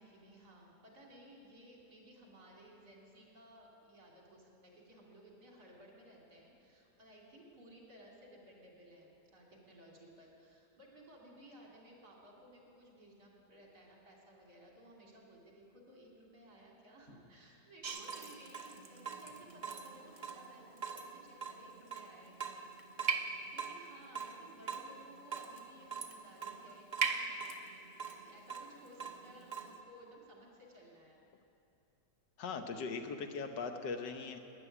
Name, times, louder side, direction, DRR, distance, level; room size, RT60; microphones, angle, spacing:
voice 1, 0.0-27.4 28.1-31.2, equal, 65° right, -2 dB, 3.5 m, -58 dB
Water tap faucet / Drip, 17.8-29.8, right 5 dB, 40° right, 0.7 m, -41 dB
voice 2, 32.4-34.4, left 4 dB, 85° left, 6 dB, 1.6 m, -40 dB
13.0 x 9.8 x 9.9 m, 2.7 s
omnidirectional pair, 1.9 m